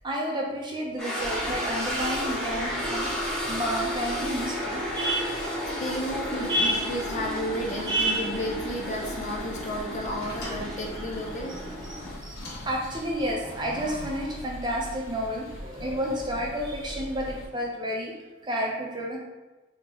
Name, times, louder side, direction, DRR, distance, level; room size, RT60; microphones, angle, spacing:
voice 1, 0.0-5.5 6.5-6.9 7.9-8.3 11.8-18.1 18.4-19.2, equal, 20° right, -2 dB, 0.5 m, -30 dB
sound 1, 1.0-12.1, equal, 5° left, 0.9 m, -32 dB
sound 2, 1.2-17.5, equal, 85° left, 0.7 m, -43 dB
voice 2, 5.8-11.6, equal, 35° left, 0 dB, 0.5 m, -33 dB
sound 3, 10.2-14.4, left 1 dB, 50° left, 1.0 m, -45 dB
3.8 x 2.9 x 2.9 m, 1.2 s
head